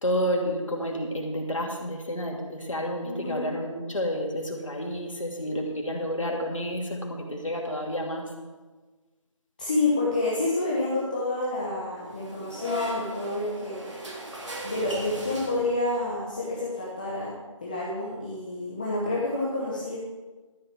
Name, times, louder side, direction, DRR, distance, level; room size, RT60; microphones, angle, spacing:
voice 1, 0.0-8.3, equal, 70° left, 1 dB, 2.9 m, -30 dB
voice 2, 3.0-3.4 9.6-14.3 14.6-17.3 17.6-20.0, left 2 dB, 15° left, -5 dB, 1.1 m, -29 dB
sound 1, 12.1-16.0, equal, 60° right, 3.2 m, -38 dB
13.0 x 6.2 x 7.8 m, 1.3 s
figure-of-eight pair, 170°, 17 cm